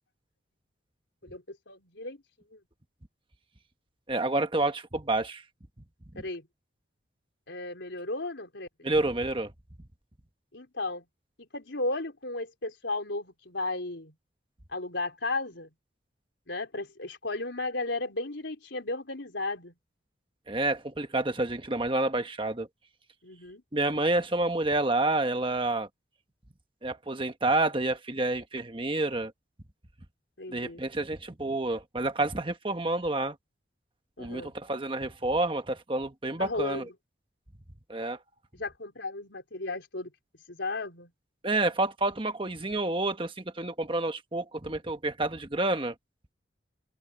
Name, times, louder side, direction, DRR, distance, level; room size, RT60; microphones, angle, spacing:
voice 1, 1.2-2.2 2.5-2.6 6.2-6.5 7.5-8.7 10.5-11.1 11.4-14.1 14.7-15.7 16.5-19.7 23.2-23.6 30.4-30.8 34.2-34.5 36.4-36.9 38.5-40.1 40.5-41.1, left 2 dB, 75° left, 3.9 m, -34 dB
voice 2, 4.1-5.4 6.1-6.2 8.8-9.5 20.5-22.7 23.7-25.9 26.8-29.3 30.5-33.3 34.2-36.8 37.9-38.2 41.4-45.9, right 2 dB, 25° right, 1.4 m, -29 dB
head